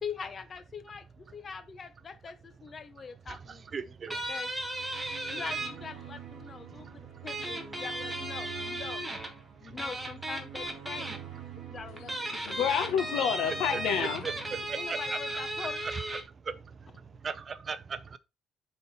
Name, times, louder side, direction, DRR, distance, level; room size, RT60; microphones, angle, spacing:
voice 1, 0.0-4.5 5.3-9.0 9.6-11.1 11.7-12.3 14.7-15.8, left 5 dB, 25° left, 0.8 m, -42 dB
voice 2, 3.7-4.2 6.7-6.9 9.6-9.7 14.7-15.2 16.5-16.9 17.2-18.2, right 5 dB, 25° right, 0.5 m, -38 dB
sound 1, 4.1-5.7 7.3-9.3 9.8-11.2 12.0-16.2, right 1 dB, 5° right, 1.1 m, -35 dB
sound 2, 4.5-15.9, right 9 dB, 40° right, 2.5 m, -47 dB
voice 3, 12.3-14.8, left 8 dB, 85° left, 1.2 m, -30 dB
8.8 x 4.1 x 4.2 m
cardioid pair, 180°, 0 cm